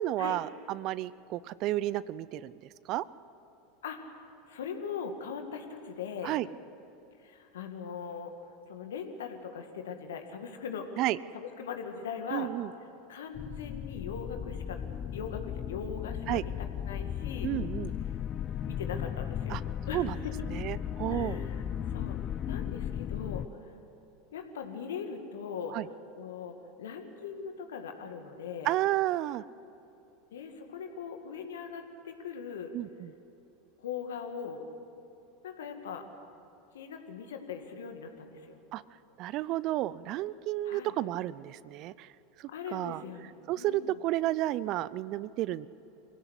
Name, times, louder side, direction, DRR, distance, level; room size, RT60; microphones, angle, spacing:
voice 1, 0.0-3.0 6.2-6.5 11.0-11.2 12.3-12.7 16.3-16.4 17.4-17.9 19.5-19.6 19.9-20.2 20.5-21.4 25.7-25.8 28.6-29.4 32.7-33.1 38.7-38.8 39.2-42.1 42.4-43.0 43.5-45.7, right 15 dB, 50° right, 19 dB, 0.5 m, -32 dB
voice 2, 3.8-6.4 7.2-8.3 8.7-11.0 11.3-12.5 13.1-14.9 15.1-17.5 18.6-19.6 19.9-20.3 21.1-22.2 22.5-23.7 24.3-25.8 26.2-28.7 30.3-32.7 33.8-34.6 35.4-36.1 36.7-38.6 40.6-40.9 42.5-43.9, left 6 dB, 75° left, 5 dB, 2.1 m, -40 dB
sound 1, 13.3-23.5, left 9 dB, 35° left, 0.5 m, -36 dB
24.0 x 16.5 x 8.3 m, 2.8 s
hypercardioid pair, 85°, 0 cm